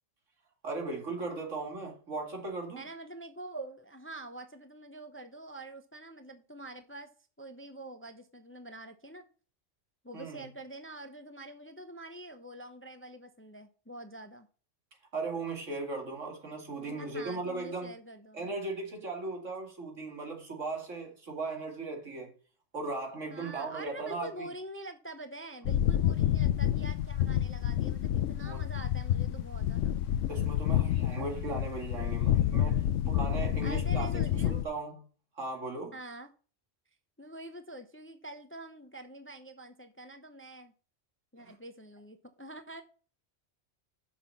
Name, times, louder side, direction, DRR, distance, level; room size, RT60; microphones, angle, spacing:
voice 1, 0.6-2.8 10.1-10.4 15.1-17.9 18.3-22.3 22.7-24.5 28.4-28.6 30.3-35.0 35.4-36.0 41.4-41.5, right 3 dB, 85° right, 2.5 m, -37 dB
voice 2, 2.8-7.1 7.4-9.2 10.0-14.5 16.8-18.6 23.3-29.9 32.0-32.7 33.6-34.6 35.9-36.3 37.2-40.7 41.3-42.8, right 1 dB, 15° left, 0.6 m, -46 dB
sound 1, 25.6-34.6, left 11 dB, 80° left, 1.0 m, -29 dB
6.8 x 5.9 x 6.9 m
omnidirectional pair, 1.2 m